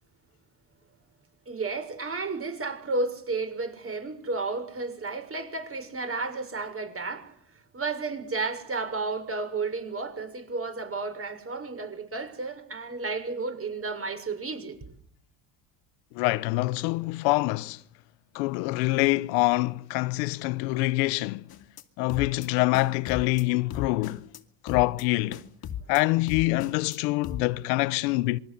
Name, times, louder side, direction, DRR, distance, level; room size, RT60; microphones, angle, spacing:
voice 1, 1.4-7.3 7.7-14.8, right 3 dB, 25° right, 6.8 m, -32 dB
voice 2, 16.1-17.8 18.3-21.5 22.0-24.3 24.6-25.4 25.9-28.4, left 21 dB, 90° left, 1.0 m, -25 dB
sound 1, 21.5-21.8 22.1-22.5 22.7-23.4 23.7-24.4 24.7-25.0 25.3-26.0 26.3-27.0 27.2-27.4, left 9 dB, 45° left, 2.6 m, -37 dB
26.5 x 23.0 x 8.1 m
supercardioid pair, 95°, 49 cm